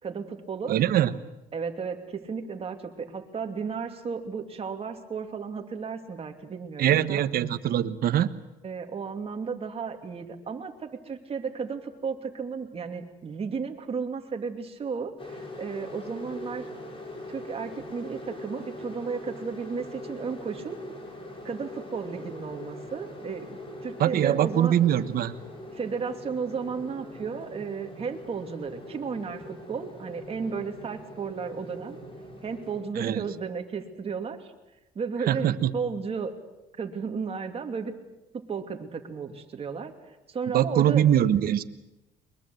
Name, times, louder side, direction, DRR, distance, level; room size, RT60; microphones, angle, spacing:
voice 1, 0.0-0.8 1.5-7.2 8.6-16.7 17.3-20.8 21.4-24.8 25.7-32.0 32.4-34.5 34.9-35.5 35.7-36.3 36.8-37.9 38.3-41.0, right 5 dB, 35° right, 4 dB, 2.8 m, -34 dB
voice 2, 0.7-1.1 6.8-8.3 24.0-25.4 32.9-33.2 35.3-35.7 40.5-41.6, right 11 dB, 60° right, 12 dB, 1.2 m, -23 dB
sound 1, 15.2-32.8, left 1 dB, 30° left, 5.9 m, -42 dB
22.5 x 22.0 x 7.9 m, 0.99 s
cardioid pair, 110°, 17 cm